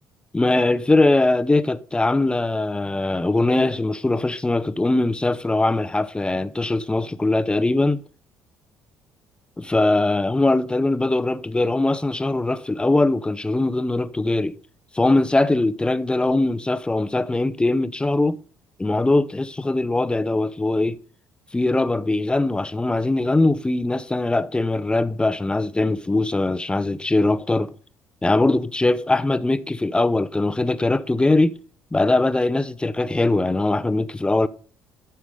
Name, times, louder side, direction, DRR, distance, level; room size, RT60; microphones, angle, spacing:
voice 1, 0.3-8.0 9.6-14.6 14.9-18.4 18.8-21.0 21.5-27.8 28.2-31.6 31.9-34.5, left 2 dB, 15° left, 0.7 m, -21 dB
11.0 x 6.9 x 3.7 m
hypercardioid pair, 55°, 7 cm